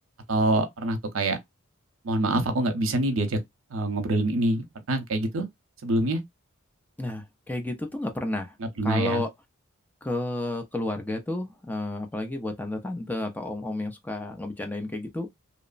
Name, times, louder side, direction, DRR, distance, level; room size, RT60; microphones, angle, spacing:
voice 1, 0.3-1.4 2.0-3.4 3.7-5.4 5.8-6.2 8.8-9.2, right 2 dB, 70° right, 0.7 m, -25 dB
voice 2, 7.0-8.6 8.8-9.3 10.0-15.3, left 2 dB, 10° left, 0.4 m, -31 dB
2.9 x 2.0 x 2.4 m
head